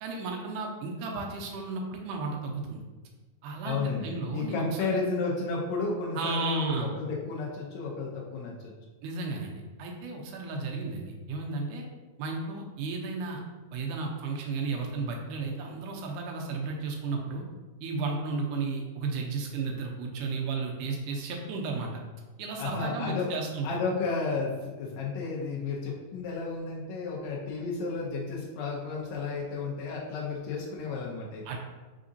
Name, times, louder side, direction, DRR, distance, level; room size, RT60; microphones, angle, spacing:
voice 1, 0.0-2.8 3.4-5.0 6.2-6.9 9.0-11.8 12.2-13.4 13.7-17.4 17.8-21.9 22.4-23.8 31.5-31.6, right 3 dB, 80° right, 0 dB, 2.0 m, -33 dB
voice 2, 3.6-4.1 4.3-8.7 22.6-23.3 23.6-31.4, left 4 dB, 85° left, -3 dB, 1.5 m, -32 dB
4.9 x 3.7 x 2.6 m, 1.3 s
omnidirectional pair, 3.8 m